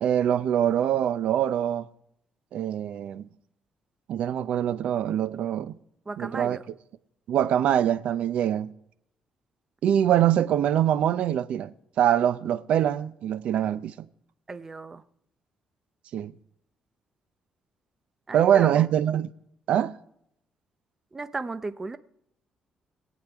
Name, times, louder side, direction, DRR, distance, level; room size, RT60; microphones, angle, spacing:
voice 1, 0.0-1.9 2.5-3.3 4.1-5.7 6.2-6.6 7.3-8.7 9.8-13.9 16.1-16.3 18.3-19.3 19.7-20.0, right 10 dB, 70° right, 0.5 m, -24 dB
voice 2, 6.1-6.6 14.5-15.0 18.3-18.9 21.1-22.0, right 3 dB, 20° right, 0.5 m, -35 dB
22.5 x 8.6 x 3.5 m
cardioid pair, 145°, 2 cm